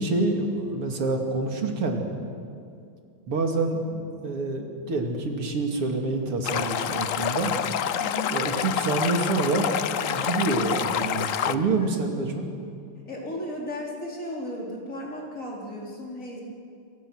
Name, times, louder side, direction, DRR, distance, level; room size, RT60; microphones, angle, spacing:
voice 1, 0.0-2.1 3.3-7.6 8.3-9.7 10.0-12.5, right 3 dB, 90° right, 3 dB, 3.5 m, -27 dB
Stream, 6.4-11.5, left 9 dB, 80° left, 0.7 m, -27 dB
voice 2, 8.0-8.3 11.8-11.9 13.1-16.4, left 1 dB, 35° left, -2 dB, 4.7 m, -35 dB
29.0 x 24.5 x 6.4 m, 2.4 s
omnidirectional pair, 2.4 m